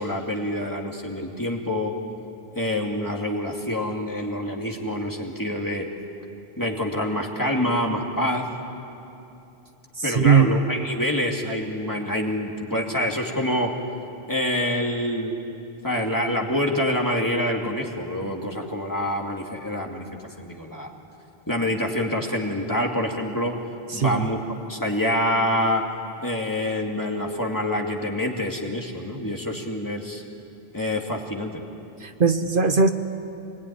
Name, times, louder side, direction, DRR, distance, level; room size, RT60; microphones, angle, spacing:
voice 1, 0.0-1.9 2.5-5.9 6.6-8.5 10.0-13.7 14.3-15.4 15.8-20.1 20.4-20.9 21.5-23.6 23.9-24.4 24.7-25.8 26.2-30.2 30.7-31.6, left 1 dB, 20° left, 0 dB, 2.3 m, -26 dB
voice 2, 10.0-10.6 23.9-24.3 32.0-32.9, right 5 dB, 60° right, 8 dB, 1.0 m, -19 dB
25.5 x 20.5 x 10.0 m, 2.8 s
omnidirectional pair, 1.0 m